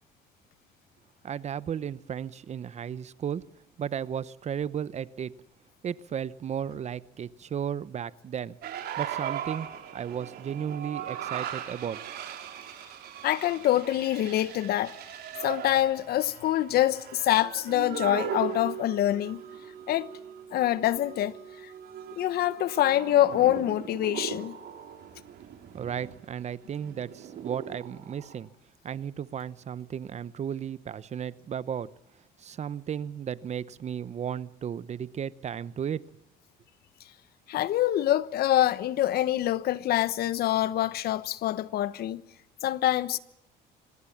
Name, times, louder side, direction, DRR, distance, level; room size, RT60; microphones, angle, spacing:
voice 1, 1.2-3.4 3.8-5.3 5.8-8.6 9.0-12.0 25.7-28.5 28.8-31.9 32.4-36.1, right 8 dB, 40° right, 0.9 m, -34 dB
sound 1, 8.6-28.3, right 9 dB, 70° right, 4.1 m, -39 dB
voice 2, 13.2-14.9 15.4-19.4 19.9-20.1 20.5-21.4 22.2-24.6 37.5-42.2 42.6-43.2, left 13 dB, 65° left, 1.1 m, -25 dB
25.0 x 19.5 x 7.3 m
cardioid pair, 110°, 17 cm